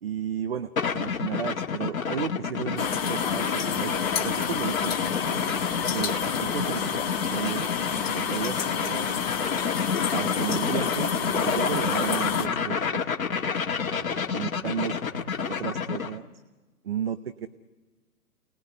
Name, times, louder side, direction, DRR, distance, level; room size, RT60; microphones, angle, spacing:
voice 1, 0.0-5.3 5.9-7.7 8.1-9.1 10.1-13.0 13.9-16.3 16.8-17.5, right 8 dB, 40° right, 11 dB, 0.8 m, -34 dB
sound 1, 0.8-16.2, left 6 dB, 60° left, 1.6 m, -29 dB
sound 2, 2.8-12.5, left 7 dB, 40° left, 1.6 m, -29 dB
28.5 x 19.5 x 9.8 m, 1.3 s
figure-of-eight pair, 140°, 48 cm